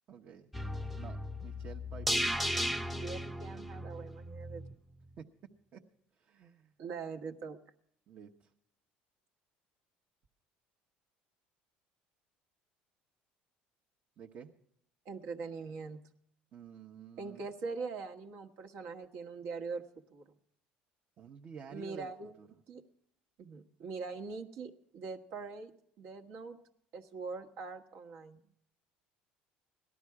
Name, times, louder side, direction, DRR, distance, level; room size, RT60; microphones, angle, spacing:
voice 1, 0.1-0.5 1.0-2.3 3.9-4.0 5.2-5.3 5.7-5.8 6.2-6.7 8.1-8.5 14.2-14.5 16.5-17.5 21.2-22.1 22.4-22.5 28.4-28.5, right 7 dB, 50° right, 1 dB, 1.1 m, -50 dB
sound 1, 0.5-4.7 5.1-5.2, equal, ahead, 0.6 m, -36 dB
voice 2, 2.9-4.8 6.8-7.6 15.0-16.0 17.2-19.8 20.1-20.3 21.7-22.3 22.7-22.8 23.4-25.7 26.0-26.6 26.9-28.4, right 4 dB, 70° right, 4 dB, 1.3 m, -42 dB
17.5 x 12.5 x 4.7 m, 0.70 s
supercardioid pair, 100°, 4 cm